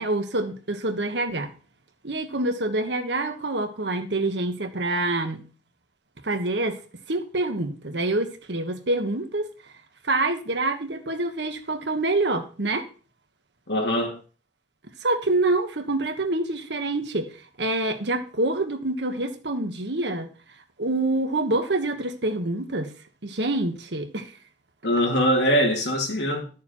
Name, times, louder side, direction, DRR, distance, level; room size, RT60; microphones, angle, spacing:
voice 1, 0.0-1.5 2.0-5.5 6.2-6.8 7.1-9.5 10.0-12.9 15.0-17.3 17.6-20.3 20.8-22.9 23.2-24.3, right 2 dB, 70° right, 1.4 m, -26 dB
voice 2, 13.7-14.2 24.8-26.5, equal, 70° left, 2.6 m, -22 dB
11.5 x 6.8 x 4.5 m
head